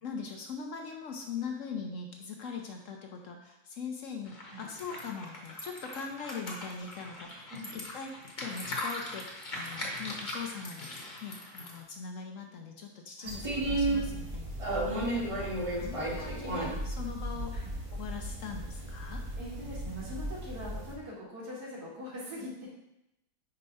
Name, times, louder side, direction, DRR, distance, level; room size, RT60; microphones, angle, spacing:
voice 1, 0.0-7.4 7.7-17.6 17.9-19.3, left 5 dB, 65° left, 2 dB, 0.9 m, -41 dB
sound 1, 4.2-11.8, left 1 dB, 35° left, 1.0 m, -41 dB
sound 2, 13.3-20.9, right 1 dB, 30° right, 0.7 m, -34 dB
voice 2, 19.4-22.7, equal, 75° right, -6 dB, 2.4 m, -42 dB
5.4 x 4.6 x 4.1 m, 0.88 s
omnidirectional pair, 1.7 m